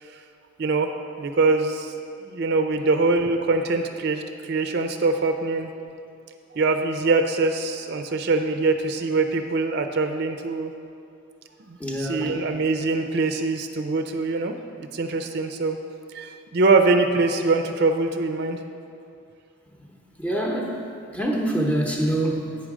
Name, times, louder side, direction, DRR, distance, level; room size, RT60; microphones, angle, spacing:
voice 1, 0.6-0.9 1.2-1.9 2.2-5.7 6.5-10.7 11.7-15.8 16.1-18.6, right 3 dB, 55° right, 6 dB, 0.5 m, -23 dB
voice 2, 11.8-12.4 20.2-20.8 21.1-22.6, right 1 dB, 5° left, -1 dB, 0.8 m, -25 dB
8.3 x 6.3 x 4.9 m, 2.5 s
head